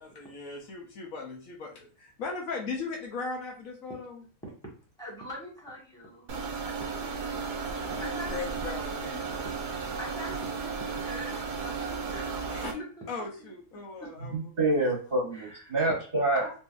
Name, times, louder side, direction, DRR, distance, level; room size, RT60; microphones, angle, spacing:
voice 1, 0.0-4.2 7.7-9.3 12.5-14.5, left 4 dB, 65° left, 0 dB, 1.1 m, -38 dB
voice 2, 5.0-6.7 7.0-8.4 8.7-8.8 9.4-12.6 13.4-14.1 15.3-15.7 16.3-16.6, equal, 5° left, -5 dB, 1.3 m, -44 dB
sound 1, 6.3-12.7, right 5 dB, 90° right, 0.4 m, -34 dB
voice 3, 14.2-16.4, right 2 dB, 45° right, -3 dB, 1.0 m, -27 dB
3.9 x 2.7 x 2.5 m, 0.39 s
omnidirectional pair, 1.6 m